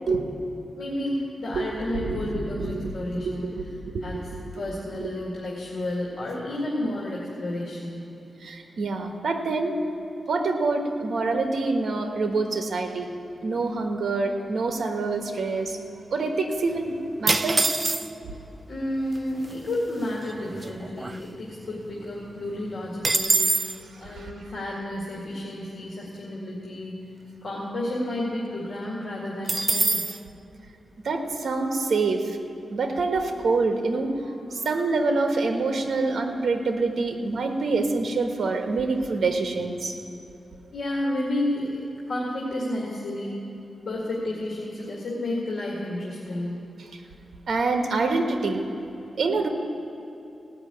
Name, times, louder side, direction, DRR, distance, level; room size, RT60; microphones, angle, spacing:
voice 1, 0.8-3.5 4.0-4.2 4.5-8.1 18.7-23.6 24.0-27.0 27.4-30.0 40.7-41.8 42.1-43.4 43.9-46.6, left 1 dB, 60° left, -5 dB, 2.2 m, -31 dB
voice 2, 2.6-4.5 5.0-5.1 8.4-9.7 10.3-13.1 13.4-15.8 16.1-17.6 24.0-24.3 31.0-32.4 32.7-34.1 34.5-39.9 47.5-48.6 49.2-49.5, right 3 dB, 70° right, 4 dB, 1.2 m, -26 dB
sound 1, 17.3-18.4 19.2-19.3 19.4-19.8 20.2-21.7 22.0-22.1 22.4-23.8 29.5-30.2, right 2 dB, 25° right, 0.3 m, -24 dB
17.0 x 5.9 x 8.5 m, 2.9 s
wide cardioid pair, 130°, 0 cm